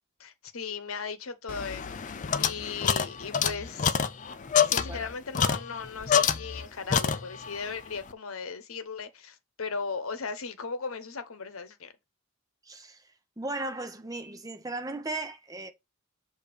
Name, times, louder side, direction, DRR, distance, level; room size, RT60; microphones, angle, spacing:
voice 1, 0.2-4.0 4.6-11.9, left 5 dB, 80° left, 0.9 m, -37 dB
sound 1, 1.5-6.7 6.9-7.6, left 7 dB, 35° left, 0.4 m, -27 dB
voice 2, 12.6-13.0 13.4-15.7, right 2 dB, 15° right, 0.8 m, -36 dB
6.8 x 2.8 x 5.0 m
head